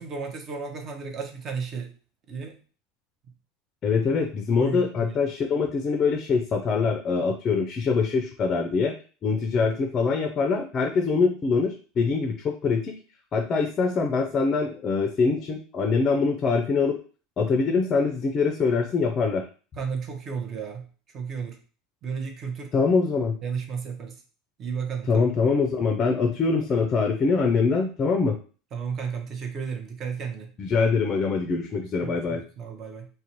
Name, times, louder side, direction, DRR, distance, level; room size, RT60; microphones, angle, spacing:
voice 1, 0.0-1.9 2.3-2.6 4.6-5.1 19.8-20.9 21.1-21.6 22.0-22.7 23.4-24.2 24.6-25.3 28.7-30.5 32.0-33.1, right 6 dB, 40° right, 4 dB, 0.6 m, -33 dB
voice 2, 3.8-9.0 9.2-13.0 13.3-17.0 17.4-19.4 22.7-23.4 25.1-28.4 30.6-32.4, left 4 dB, 35° left, 5 dB, 0.4 m, -24 dB
2.4 x 2.1 x 2.9 m, 0.38 s
hypercardioid pair, 95°, 0 cm